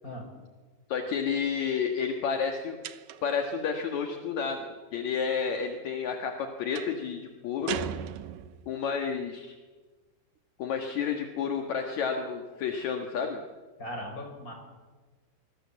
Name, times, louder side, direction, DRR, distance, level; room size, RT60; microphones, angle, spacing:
voice 1, 0.9-2.8 3.2-4.7 4.9-7.8 8.7-9.6 10.6-13.4, left 6 dB, 55° left, 4 dB, 2.2 m, -30 dB
sound 1, 2.8-3.4 6.7-7.0 7.7-8.7, right 10 dB, 80° right, 2.0 m, -37 dB
voice 2, 13.8-14.5, left 1 dB, 20° left, 2 dB, 5.8 m, -38 dB
26.5 x 20.5 x 7.5 m, 1.3 s
omnidirectional pair, 5.0 m